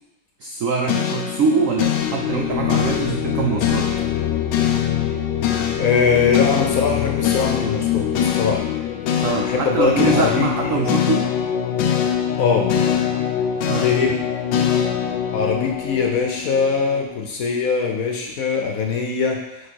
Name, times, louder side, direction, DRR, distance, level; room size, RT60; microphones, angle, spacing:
voice 1, 0.4-3.9 9.2-11.3 13.7-13.9, right 5 dB, 75° right, 1 dB, 0.7 m, -23 dB
sound 1, 0.9-17.2, left 9 dB, 85° left, 1.3 m, -23 dB
voice 2, 5.8-8.6 9.4-10.7 12.4-12.7 13.7-14.2 15.3-19.4, left 5 dB, 60° left, 2 dB, 1.0 m, -21 dB
4.8 x 4.7 x 4.5 m, 0.90 s
omnidirectional pair, 1.9 m